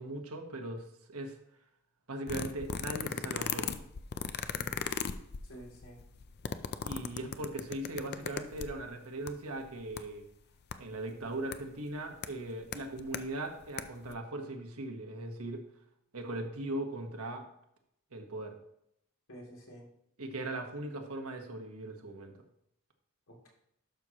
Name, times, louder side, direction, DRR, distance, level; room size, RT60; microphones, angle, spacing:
voice 1, 0.0-1.4 2.1-3.8 6.8-10.3 10.8-15.6 16.1-17.5 18.1-18.6 20.2-22.3, right 2 dB, 75° right, 4 dB, 1.3 m, -39 dB
sound 1, 2.3-8.9 9.3-9.4 9.6-10.0 10.7-10.8 11.5-11.6 12.2-12.3 12.7-13.2 13.6-13.8 14.1-14.2, left 7 dB, 50° left, 0.5 m, -36 dB
voice 2, 4.4-4.7 5.5-6.0 19.3-19.8 23.3-23.5, right 1 dB, 70° left, -3 dB, 2.9 m, -50 dB
11.5 x 6.3 x 3.0 m, 0.75 s
head